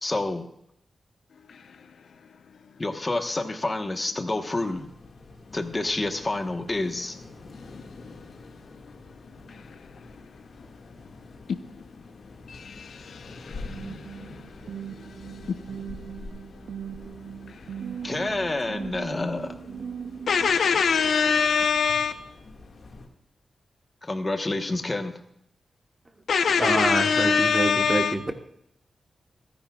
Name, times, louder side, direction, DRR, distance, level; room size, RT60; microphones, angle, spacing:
voice 1, 0.0-0.4 2.8-4.8 5.5-7.1 18.0-19.5 24.0-25.1, left 2 dB, 20° left, 1.2 m, -28 dB
voice 2, 1.5-1.9 2.5-2.6 7.5-8.5 8.7-9.0 9.5-10.5 11.5-16.7 17.3-17.8 20.3-22.4 26.3-28.2, left 6 dB, 70° left, 0.8 m, -27 dB
sound 1, 4.6-23.1, left 3 dB, 55° left, 1.9 m, -46 dB
sound 2, 13.7-20.5, right 7 dB, 70° right, 0.4 m, -39 dB
voice 3, 26.6-28.3, right 2 dB, 20° right, 1.2 m, -26 dB
26.5 x 10.5 x 2.4 m
wide cardioid pair, 160°, 0 cm